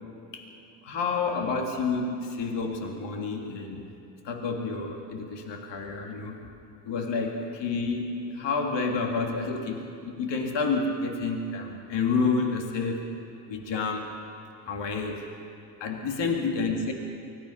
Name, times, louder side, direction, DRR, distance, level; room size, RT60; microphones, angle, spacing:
voice 1, 0.8-3.9 4.2-6.4 6.8-13.1 13.5-14.1 14.6-15.2 15.8-16.9, left 4 dB, 60° left, 2 dB, 2.9 m, -29 dB
24.0 x 19.5 x 5.8 m, 2.7 s
hypercardioid pair, 65°, 48 cm